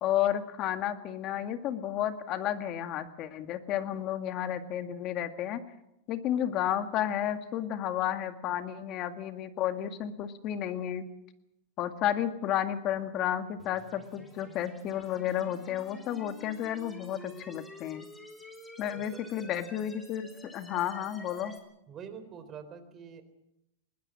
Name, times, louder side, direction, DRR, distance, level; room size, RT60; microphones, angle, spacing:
voice 1, 0.0-5.6 6.1-11.0 11.8-18.1 18.8-21.5, left 11 dB, 40° left, 8 dB, 2.0 m, -32 dB
sound 1, 13.6-21.6, left 1 dB, 10° left, 3.5 m, -50 dB
voice 2, 21.9-23.2, right 7 dB, 25° right, 9 dB, 3.6 m, -45 dB
21.0 x 19.5 x 7.5 m, 0.84 s
supercardioid pair, 145°, 0 cm